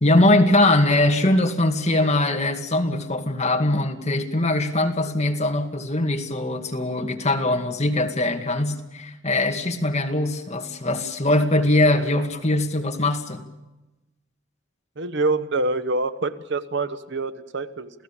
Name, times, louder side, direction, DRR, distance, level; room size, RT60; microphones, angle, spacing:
voice 1, 0.0-13.4, left 1 dB, 35° left, 3 dB, 2.2 m, -21 dB
voice 2, 15.0-17.9, right 3 dB, 60° right, 11 dB, 1.1 m, -26 dB
29.0 x 16.5 x 7.3 m, 1.0 s
head